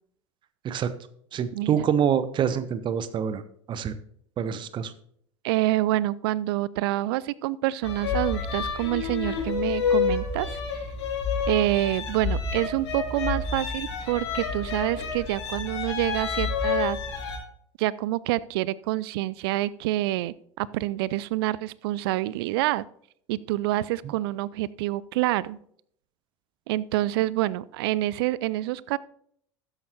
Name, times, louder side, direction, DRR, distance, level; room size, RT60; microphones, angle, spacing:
voice 1, 1.3-3.4 3.7-3.9 4.4-4.9 24.0-24.1, right 8 dB, 30° right, 13 dB, 0.9 m, -26 dB
voice 2, 5.4-10.6 11.5-17.0 17.8-22.8 23.3-25.6 26.7-29.0, right 16 dB, 55° right, 22 dB, 0.4 m, -27 dB
sound 1, 7.8-17.4, left 6 dB, 65° left, 2.3 m, -29 dB
12.5 x 9.7 x 2.9 m, 0.66 s
figure-of-eight pair, 75°, 15 cm